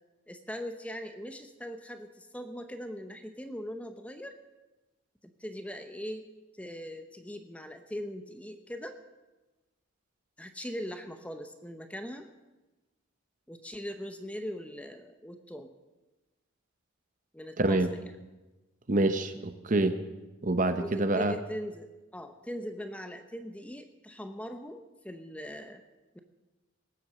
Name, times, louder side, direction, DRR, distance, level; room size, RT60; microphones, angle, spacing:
voice 1, 0.3-4.3 5.2-6.3 6.5-8.9 10.4-12.3 13.5-15.7 17.3-18.1 20.8-25.8, equal, 5° left, 7 dB, 0.8 m, -40 dB
voice 2, 17.6-17.9 18.9-20.0 20.4-21.3, right 2 dB, 40° right, 9 dB, 0.8 m, -26 dB
19.0 x 7.9 x 7.5 m, 1.1 s
head